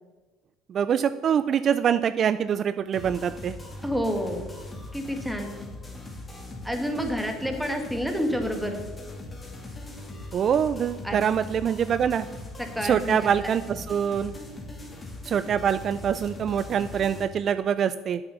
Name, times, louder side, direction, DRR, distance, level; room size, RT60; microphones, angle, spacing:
voice 1, 0.7-3.6 10.3-12.3 12.8-14.3 15.2-18.2, right 8 dB, 50° right, 13 dB, 0.4 m, -24 dB
sound 1, 2.9-17.2, left 2 dB, 20° left, 2.2 m, -40 dB
voice 2, 3.8-4.5 4.9-5.5 6.6-8.8 11.0-11.2 12.6-13.5, equal, ahead, 4 dB, 1.8 m, -29 dB
8.0 x 7.1 x 7.0 m, 1.3 s
supercardioid pair, 80°, 0 cm